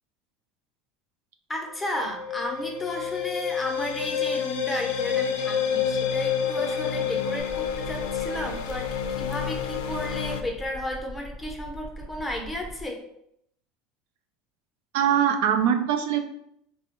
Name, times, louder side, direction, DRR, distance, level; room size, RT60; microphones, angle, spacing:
voice 1, 1.5-13.0, left 1 dB, 10° left, 1 dB, 0.6 m, -33 dB
sound 1, 1.7-10.4, left 7 dB, 85° left, 0.3 m, -29 dB
sound 2, 7.4-12.8, equal, 50° right, 1.0 m, -42 dB
voice 2, 14.9-16.2, right 9 dB, 80° right, 6 dB, 0.3 m, -22 dB
3.3 x 2.1 x 2.9 m, 0.75 s
supercardioid pair, 125°, 0 cm